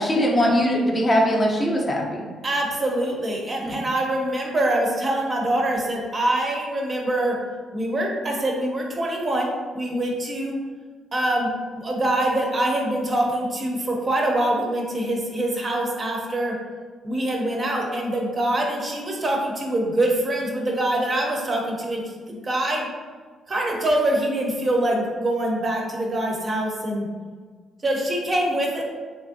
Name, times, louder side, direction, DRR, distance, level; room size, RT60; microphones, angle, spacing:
voice 1, 0.0-2.3 3.6-3.8, equal, 25° left, -1 dB, 0.6 m, -21 dB
voice 2, 2.4-7.4 7.7-10.6 11.1-11.5 11.7-16.6 17.0-22.0 22.3-22.9 23.5-27.1 27.8-28.8, right 1 dB, 35° right, -1 dB, 0.5 m, -24 dB
2.9 x 2.5 x 2.6 m, 1.5 s
cardioid pair, 90°, 0 cm